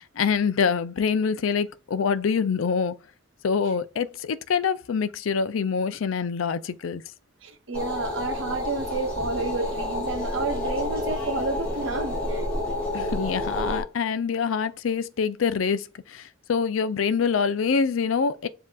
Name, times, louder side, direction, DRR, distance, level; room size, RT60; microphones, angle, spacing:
voice 1, 0.0-2.9 3.4-7.0 12.9-18.5, left 6 dB, 90° left, 0.4 m, -25 dB
voice 2, 7.4-12.5, right 3 dB, 75° right, 0.9 m, -30 dB
sound 1, 7.7-13.8, left 1 dB, 5° left, 2.1 m, -29 dB
7.3 x 2.7 x 2.4 m
head